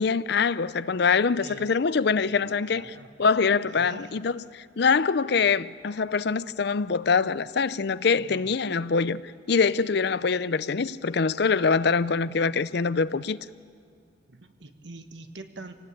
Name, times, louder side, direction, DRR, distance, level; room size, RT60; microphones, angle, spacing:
voice 1, 0.0-2.9 3.2-9.2 9.5-13.4, left 5 dB, 60° left, 0.5 m, -24 dB
voice 2, 2.3-3.1 3.6-4.2 8.2-8.6 10.1-10.2 11.7-12.1 14.3-15.7, right 2 dB, 65° right, 1.5 m, -45 dB
25.5 x 18.0 x 8.7 m
head